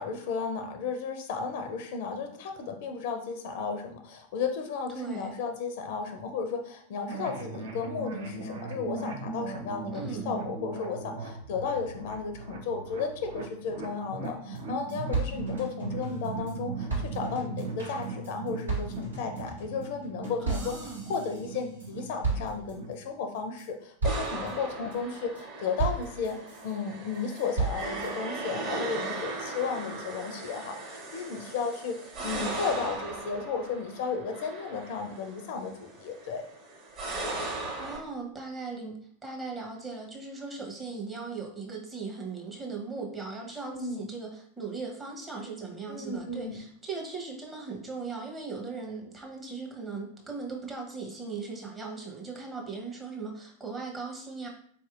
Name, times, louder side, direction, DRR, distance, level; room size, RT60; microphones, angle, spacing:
voice 1, 0.0-26.4 26.6-36.4 43.7-44.0 45.9-46.6, left 5 dB, 50° left, 5 dB, 0.5 m, -34 dB
voice 2, 4.9-5.4 9.9-10.3 20.4-21.1 32.2-32.5 37.5-39.0 39.2-54.5, right 4 dB, 15° right, -1 dB, 0.8 m, -38 dB
sound 1, 7.1-23.0, right 4 dB, 60° right, 0.6 m, -39 dB
sound 2, 14.2-14.3 14.5-14.6 14.9-16.5 16.9-21.9 22.2-22.9 23.3-23.7 24.0-24.5 24.9-25.4 25.8-26.7 27.1-28.1, right 3 dB, 75° right, 1.2 m, -34 dB
sound 3, 24.0-38.0, right 2 dB, 35° right, 1.0 m, -38 dB
4.1 x 2.7 x 2.4 m, 0.62 s
figure-of-eight pair, 90°, 0 cm